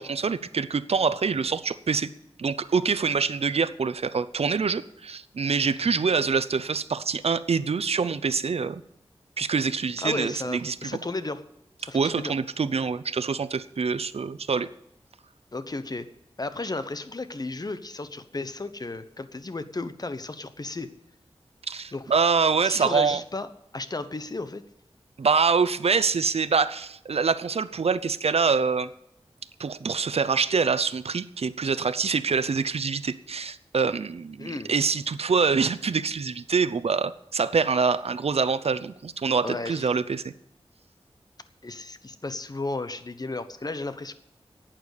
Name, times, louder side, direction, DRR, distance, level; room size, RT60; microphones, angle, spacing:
voice 1, 0.0-2.1 2.4-8.8 9.4-10.9 11.9-14.7 21.7-23.2 25.2-28.9 29.6-40.2, right 5 dB, 75° right, 13 dB, 0.6 m, -25 dB
voice 2, 10.0-11.4 11.8-12.3 15.5-16.1 16.4-20.9 21.9-22.1 22.6-23.5 23.7-24.6 34.4-34.7 39.4-39.9 41.6-44.1, left 3 dB, 40° left, 12 dB, 0.9 m, -34 dB
11.5 x 8.9 x 8.3 m, 0.80 s
wide cardioid pair, 70°, 11 cm